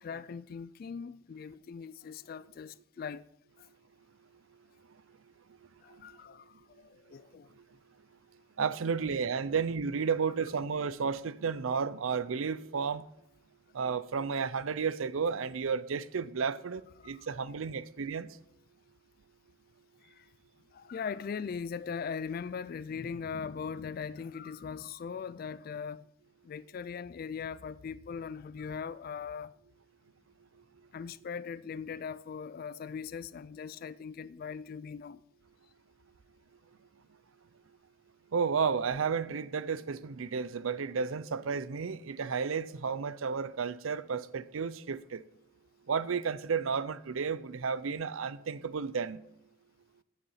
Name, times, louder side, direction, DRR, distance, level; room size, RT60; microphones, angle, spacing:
voice 1, 0.0-3.3 3.6-3.7 5.8-7.5 9.1-9.2 17.0-17.3 20.0-20.3 20.7-26.1 26.4-29.5 30.9-35.2, left 6 dB, 45° left, 0.3 m, -40 dB
voice 2, 8.6-13.0 13.7-18.3 38.3-45.2 45.9-49.2, right 5 dB, 90° right, 0.5 m, -32 dB
9.6 x 8.3 x 5.7 m
head